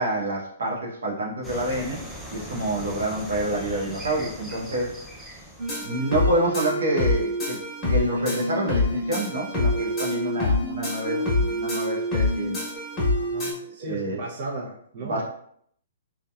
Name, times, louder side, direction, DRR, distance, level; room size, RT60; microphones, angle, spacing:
voice 1, 0.0-2.0 2.3-5.0 5.8-7.6 7.9-12.6 13.8-14.2 15.0-15.2, right 1 dB, 85° right, -3 dB, 0.8 m, -27 dB
sound 1, 1.4-6.5, equal, ahead, 0.4 m, -39 dB
sound 2, 5.6-13.5, left 1 dB, 15° left, 1.0 m, -26 dB
voice 2, 13.1-15.2, right 2 dB, 45° right, -4 dB, 0.6 m, -36 dB
2.8 x 2.2 x 2.3 m, 0.67 s
hypercardioid pair, 155°, 0 cm